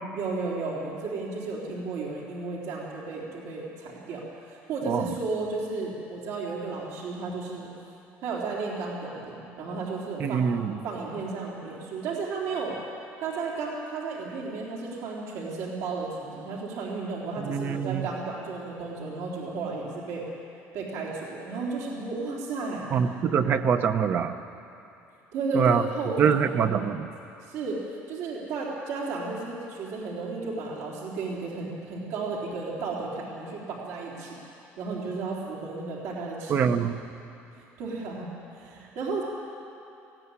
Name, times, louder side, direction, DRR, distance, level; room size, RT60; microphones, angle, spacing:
voice 1, 0.1-7.7 8.2-10.4 10.8-12.8 13.2-20.2 20.7-22.8 25.3-26.5 27.4-27.8 28.1-34.3 34.8-36.6 37.8-39.2, right 3 dB, 70° right, -3 dB, 3.5 m, -33 dB
voice 2, 4.8-5.1 10.2-10.8 17.4-18.1 22.9-24.3 25.5-25.8 26.2-27.1 36.5-37.0, right 7 dB, 40° right, 9 dB, 0.9 m, -24 dB
18.5 x 15.5 x 9.8 m, 2.8 s
cardioid pair, 155°, 5 cm